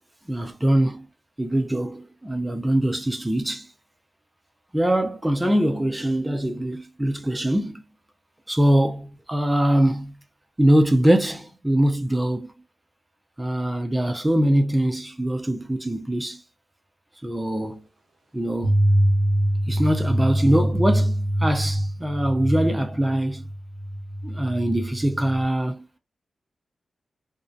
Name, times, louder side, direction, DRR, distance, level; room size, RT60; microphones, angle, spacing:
voice 1, 0.3-1.1 1.4-3.7 4.7-7.8 8.5-10.1 10.6-12.5 13.4-16.4 17.2-17.8 18.3-18.8 19.7-23.4 24.2-26.0, right 1 dB, 15° right, 0.4 m, -23 dB
sound 1, 18.6-25.4, equal, 65° right, 1.0 m, -24 dB
2.6 x 2.1 x 2.4 m
cardioid pair, 65°, 0 cm